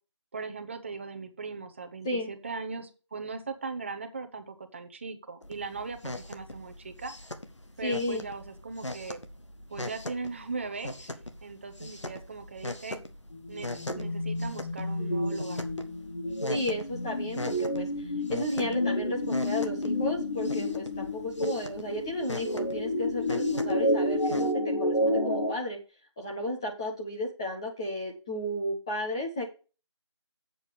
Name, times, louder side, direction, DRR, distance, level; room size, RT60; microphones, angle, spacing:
voice 1, 0.3-7.1 7.8-9.2 9.7-13.0 13.5-15.6, right 4 dB, 25° right, 9 dB, 0.9 m, -39 dB
sound 1, 5.4-24.5, left 1 dB, 75° left, 1.6 m, -41 dB
voice 2, 7.8-8.2 16.5-17.9 18.3-24.5 24.8-25.8 26.2-29.5, left 1 dB, 10° left, -2 dB, 0.7 m, -33 dB
sound 2, 13.3-25.5, left 1 dB, 60° left, 1.5 m, -30 dB
7.7 x 7.1 x 5.1 m, 0.33 s
figure-of-eight pair, 160°, 15 cm